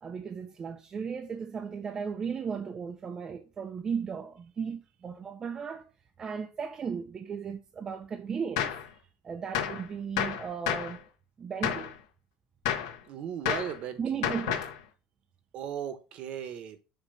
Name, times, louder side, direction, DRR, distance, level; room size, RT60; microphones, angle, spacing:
voice 1, 0.0-5.9 6.2-8.8 9.2-11.1 11.4-12.0 14.0-14.7, right 6 dB, 20° right, 0.5 m, -36 dB
Gunshot gunfire, 8.6-8.9 9.5-9.8 10.2-11.0 11.6-11.9 12.6-13.0 13.5-13.8 14.2-14.8, left 9 dB, 85° left, 1.2 m, -30 dB
voice 2, 13.1-14.0 15.5-16.8, right 8 dB, 40° right, 1.0 m, -36 dB
6.8 x 2.9 x 5.5 m
cardioid pair, 155°, 3 cm